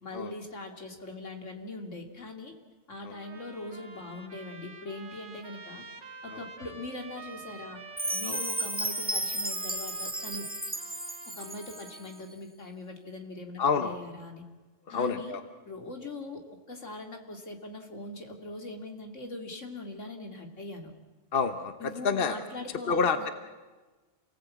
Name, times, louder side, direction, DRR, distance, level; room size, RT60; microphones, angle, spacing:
voice 1, 0.0-2.5 2.9-5.8 6.2-7.8 8.1-10.5 11.4-14.4 14.9-15.4 15.6-16.4 16.7-20.9 21.8-23.3, left 2 dB, 80° left, 3 dB, 2.9 m, -41 dB
Trumpet, 3.1-12.3, right 4 dB, 65° right, 2.3 m, -48 dB
Chime, 8.0-12.0, right 1 dB, 10° right, 0.7 m, -33 dB
voice 2, 13.6-14.0 14.9-15.4 21.3-22.4 22.9-23.3, left 5 dB, 50° left, 9 dB, 1.3 m, -28 dB
28.5 x 18.5 x 8.4 m, 1.3 s
omnidirectional pair, 1.3 m